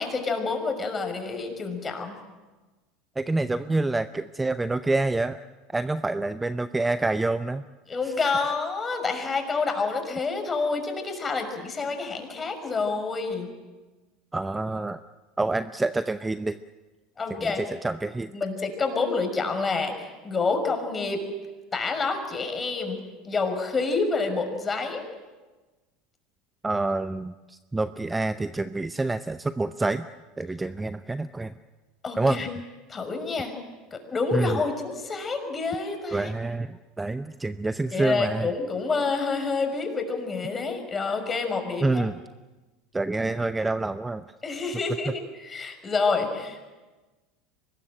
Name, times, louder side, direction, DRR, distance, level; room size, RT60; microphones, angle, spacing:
voice 1, 0.0-2.2 7.9-13.5 17.2-17.6 18.3-21.2 21.7-23.0 23.2-25.0 32.0-32.5 32.9-33.5 33.9-36.3 37.9-42.1 44.4-46.6, left 4 dB, 25° left, 5 dB, 5.9 m, -28 dB
voice 2, 3.2-5.4 5.7-7.6 14.3-15.0 15.4-16.6 17.4-18.3 26.6-30.1 30.4-31.5 32.2-32.4 34.3-34.6 36.1-38.5 41.8-42.2 42.9-44.2, right 2 dB, 15° right, 12 dB, 0.7 m, -27 dB
24.5 x 20.5 x 9.1 m, 1.2 s
hypercardioid pair, 80°, 0 cm